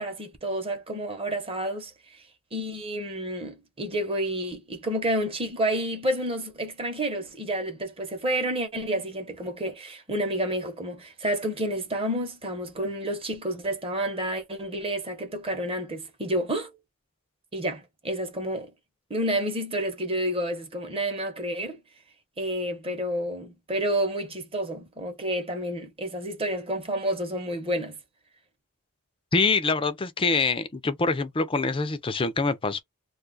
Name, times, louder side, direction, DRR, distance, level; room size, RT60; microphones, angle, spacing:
voice 1, 0.0-1.9 2.5-16.7 17.5-18.7 19.1-21.8 22.4-28.0, right 1 dB, 25° right, 0.9 m, -30 dB
voice 2, 29.3-32.8, left 3 dB, 25° left, 0.4 m, -25 dB
2.4 x 2.4 x 3.8 m
head